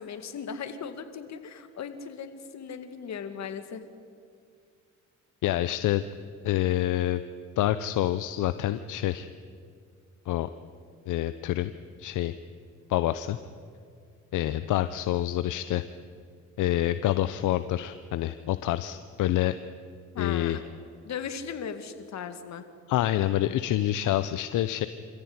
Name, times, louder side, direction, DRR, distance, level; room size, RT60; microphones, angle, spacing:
voice 1, 0.0-3.8 20.1-20.6 21.0-22.7, left 7 dB, 65° left, 9 dB, 2.1 m, -37 dB
voice 2, 5.4-6.0 6.4-7.2 7.6-9.3 10.3-10.5 11.1-11.7 12.0-12.4 12.9-13.4 14.3-15.8 16.6-19.6 20.2-20.6 22.9-24.9, left 13 dB, 80° left, 12 dB, 0.8 m, -27 dB
26.5 x 15.0 x 9.6 m, 2.2 s
cardioid pair, 90°, 30 cm